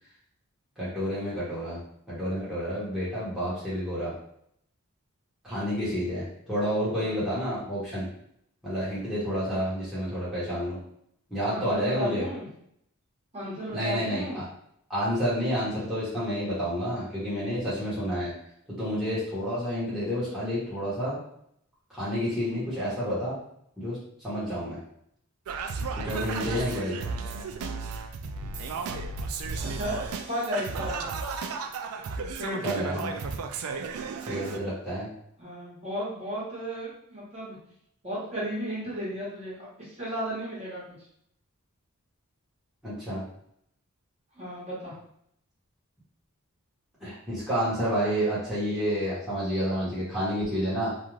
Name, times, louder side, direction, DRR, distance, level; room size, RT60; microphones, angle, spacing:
voice 1, 0.8-1.8 2.1-4.1 5.4-8.1 8.6-10.8 11.3-12.2 13.7-14.4 14.9-18.3 18.7-21.2 21.9-23.4 23.8-24.0 24.2-24.8 26.0-27.0 32.6-33.2 34.3-35.1 42.8-43.2 47.0-50.9, equal, ahead, -11 dB, 1.0 m, -29 dB
voice 2, 11.5-12.5 13.3-14.4 29.6-31.1 32.4-33.1 35.4-37.6 38.0-40.8 44.3-44.9, equal, 30° right, -8 dB, 1.1 m, -34 dB
Singing, 25.5-34.6, right 4 dB, 80° right, 0.3 m, -34 dB
2.5 x 2.3 x 3.1 m, 0.71 s
head